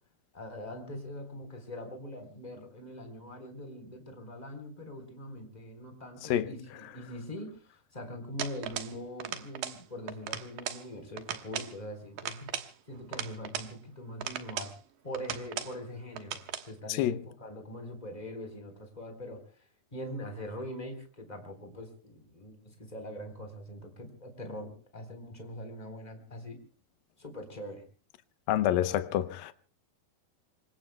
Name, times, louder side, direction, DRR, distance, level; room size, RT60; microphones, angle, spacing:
voice 1, 0.3-7.6 7.9-12.5 12.9-14.7 15.0-26.6 27.2-27.8, equal, 10° left, 3.6 m, -42 dB
sound 1, 8.4-9.0 9.2-9.8 10.1-10.8 11.2-11.7 12.2-13.7 14.2-14.8 15.1-15.8 16.2-16.7, right 10 dB, 75° right, 2.9 m, -37 dB
voice 2, 28.5-29.5, left 12 dB, 80° left, 2.7 m, -28 dB
27.0 x 24.0 x 2.2 m
omnidirectional pair, 4.1 m